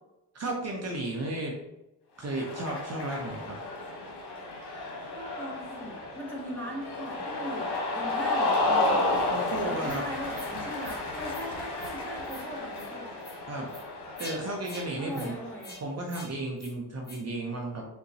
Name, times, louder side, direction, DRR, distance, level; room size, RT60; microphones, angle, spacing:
voice 1, 0.3-1.5 2.2-3.6 9.3-10.0 13.5-13.7 14.2-15.4 15.8-17.9, right 2 dB, 35° right, -1 dB, 0.7 m, -33 dB
Cheering, 2.2-15.7, left 2 dB, 60° left, 1.0 m, -32 dB
voice 2, 5.1-9.2 9.6-13.1 15.0-15.8, equal, 5° left, -4 dB, 1.2 m, -40 dB
sound 1, 9.8-10.0 10.3-10.5 10.8-11.0 11.3-11.5 11.8-12.0 12.2-12.5 12.7-12.9 13.2-13.4 13.7-13.8 14.2-14.4 14.6-14.9 15.1-15.3 15.6-15.8 16.1-16.3 16.6-16.7 17.0-17.2, left 2 dB, 25° left, 1.1 m, -45 dB
3.8 x 2.2 x 2.7 m, 0.93 s
supercardioid pair, 55°, 43 cm